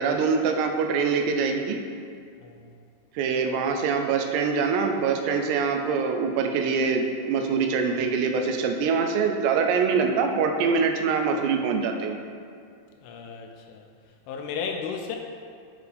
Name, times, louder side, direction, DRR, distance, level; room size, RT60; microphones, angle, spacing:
voice 1, 0.0-1.8 3.1-12.2, right 5 dB, 85° right, 4 dB, 2.7 m, -24 dB
voice 2, 2.4-2.7 13.0-13.9 14.3-15.2, left 6 dB, 80° left, 3 dB, 2.5 m, -34 dB
8.9 x 4.7 x 3.4 m, 2.3 s
omnidirectional pair, 4.8 m